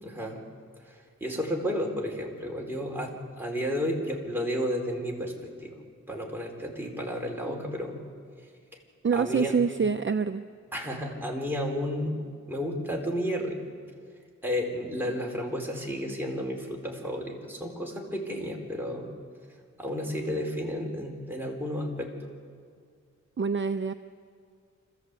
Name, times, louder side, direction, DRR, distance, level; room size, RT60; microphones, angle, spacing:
voice 1, 0.0-0.4 1.2-5.3 5.6-5.7 6.1-8.0 9.1-9.5 10.7-12.2 12.5-13.6 14.4-19.1 19.8-22.1, equal, 5° right, -1 dB, 4.4 m, -32 dB
voice 2, 9.0-10.4 23.4-23.9, right 5 dB, 40° right, 9 dB, 0.6 m, -26 dB
27.0 x 15.0 x 8.3 m, 2.1 s
wide cardioid pair, 75°, 30 cm